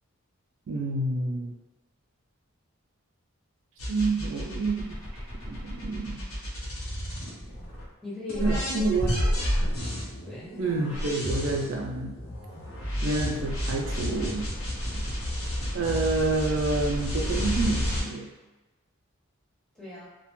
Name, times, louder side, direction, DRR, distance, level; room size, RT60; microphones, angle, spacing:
voice 1, 0.7-1.5 3.9-5.0 5.5-6.2 8.4-9.2 10.6-12.1 13.0-14.4 14.9-15.0 15.7-18.3, right 3 dB, 60° right, 0 dB, 0.3 m, -28 dB
sound 1, 3.8-7.8 8.3-18.0, equal, 80° left, 0.7 m, -31 dB
voice 2, 8.0-9.5 10.2-10.5 19.7-20.1, left 2 dB, ahead, -9 dB, 0.6 m, -39 dB
2.4 x 2.1 x 2.9 m, 1.1 s
head